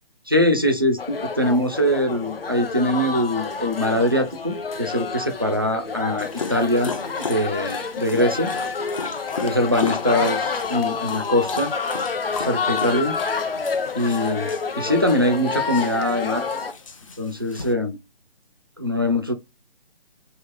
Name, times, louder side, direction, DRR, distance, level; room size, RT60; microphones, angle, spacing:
voice 1, 0.3-8.5 9.4-11.7 12.4-13.2 13.9-16.5 17.2-18.0 18.8-19.3, left 1 dB, 25° right, 0.3 m, -22 dB
sound 1, 1.0-16.7, left 5 dB, 75° left, 0.6 m, -28 dB
Dog, 6.2-17.7, left 4 dB, 35° left, 0.6 m, -36 dB
3.0 x 2.3 x 3.4 m
figure-of-eight pair, 145°, 30 cm